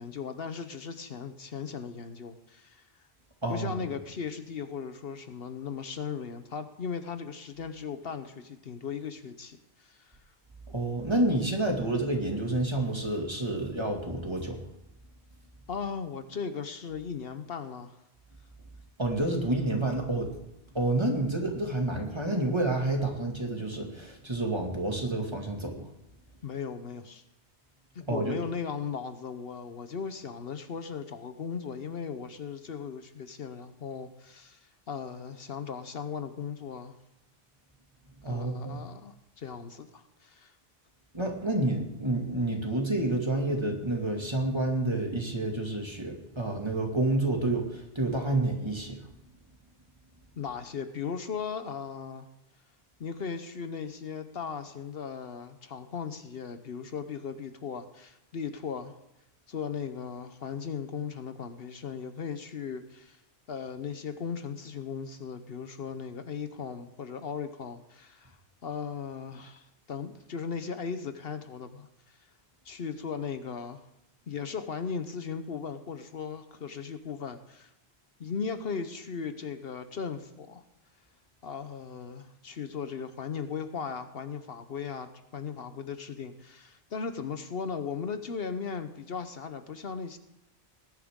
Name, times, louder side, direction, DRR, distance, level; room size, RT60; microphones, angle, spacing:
voice 1, 0.0-2.9 3.5-10.2 15.7-18.0 26.4-27.2 27.9-37.0 38.3-40.5 50.4-52.3 53.0-58.9 59.5-63.2 63.5-68.4 68.6-71.9 72.6-73.8 74.3-77.7 78.2-80.6 81.4-90.2, left 6 dB, 65° left, 9 dB, 1.0 m, -37 dB
voice 2, 3.4-3.7 10.7-14.6 19.0-20.3 20.7-25.8 28.1-28.4 38.2-38.8 41.1-49.0, right 2 dB, 25° right, 1 dB, 2.2 m, -29 dB
19.0 x 11.0 x 3.7 m, 0.89 s
omnidirectional pair, 1.1 m